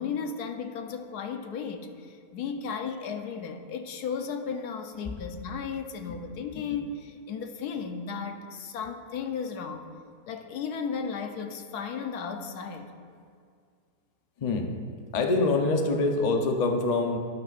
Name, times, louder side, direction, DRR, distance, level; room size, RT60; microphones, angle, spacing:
voice 1, 0.0-9.9 10.3-12.9, left 6 dB, 75° left, 6 dB, 1.2 m, -35 dB
voice 2, 15.1-17.2, left 3 dB, 40° left, 3 dB, 0.6 m, -25 dB
11.0 x 11.0 x 2.5 m, 2.2 s
omnidirectional pair, 1.8 m